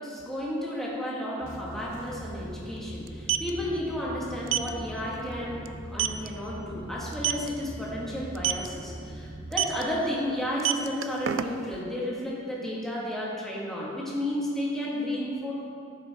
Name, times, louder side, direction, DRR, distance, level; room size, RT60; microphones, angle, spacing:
voice 1, 0.0-15.5, left 1 dB, ahead, -6 dB, 1.5 m, -32 dB
sound 1, 1.4-9.6, right 1 dB, 15° right, 1.6 m, -41 dB
sound 2, 1.5-1.6 1.8-2.0 3.0-3.5 4.5-4.7 5.1-5.3 5.6-5.7 6.0-6.3 7.1-7.5 8.3-8.7 9.5-9.8 10.5-11.8, right 11 dB, 75° right, 0.4 m, -26 dB
12.0 x 6.5 x 3.5 m, 2.3 s
head